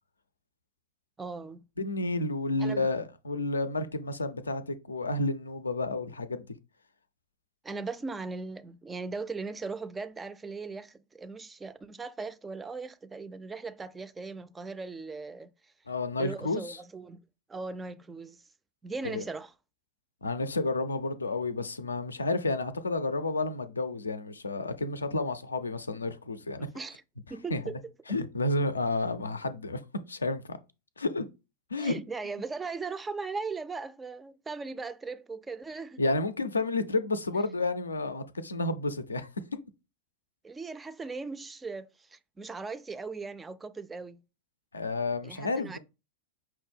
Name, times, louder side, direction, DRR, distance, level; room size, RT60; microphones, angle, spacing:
voice 1, 1.2-1.7 2.6-2.9 7.6-15.7 16.2-17.2 17.5-18.4 18.8-19.5 26.7-27.0 27.3-27.8 31.8-36.0 40.4-44.2 45.2-45.8, right 4 dB, 15° right, 0.3 m, -38 dB
voice 2, 1.8-6.4 15.9-16.8 19.0-19.2 20.2-26.7 27.5-27.6 28.1-29.8 30.1-30.6 31.0-31.3 31.7-32.0 36.0-39.3 44.7-45.8, left 2 dB, 75° left, 0.4 m, -31 dB
5.7 x 2.1 x 3.3 m
figure-of-eight pair, 90°, 0 cm